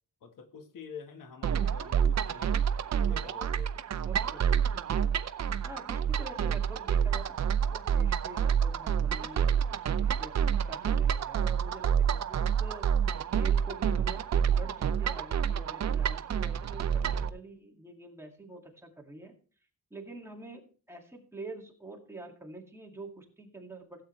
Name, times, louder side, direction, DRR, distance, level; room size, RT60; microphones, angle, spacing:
voice 1, 0.2-2.6 3.1-3.9, left 5 dB, 75° left, 1.4 m, -47 dB
sound 1, 1.4-17.3, right 8 dB, 55° right, 0.6 m, -28 dB
voice 2, 4.0-5.0 5.6-7.3 7.6-9.5 10.0-12.9 13.4-19.3 19.9-24.0, right 2 dB, 10° right, 2.1 m, -46 dB
16.0 x 8.2 x 3.2 m
wide cardioid pair, 145°, 32 cm